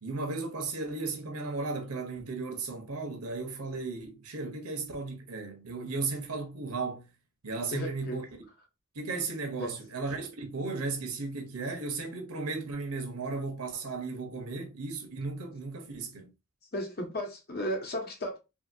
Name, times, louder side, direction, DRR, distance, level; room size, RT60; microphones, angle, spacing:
voice 1, 0.0-7.1 7.4-8.2 8.9-16.3, right 3 dB, 80° right, 0.9 m, -35 dB
voice 2, 7.7-8.2 9.6-9.7 16.7-18.4, equal, 45° left, 0.9 m, -34 dB
2.7 x 2.7 x 2.6 m
head